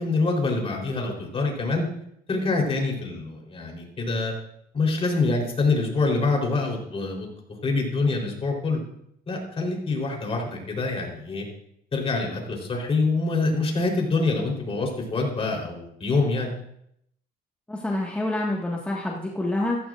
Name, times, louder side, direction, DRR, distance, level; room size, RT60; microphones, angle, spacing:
voice 1, 0.0-1.8 2.3-4.3 4.7-7.3 7.6-8.8 9.3-11.5 11.9-16.5, left 3 dB, 35° left, 0 dB, 3.9 m, -25 dB
voice 2, 17.7-19.8, left 1 dB, 10° left, -3 dB, 1.7 m, -27 dB
14.5 x 14.5 x 2.6 m, 0.73 s
cardioid pair, 110°, 17 cm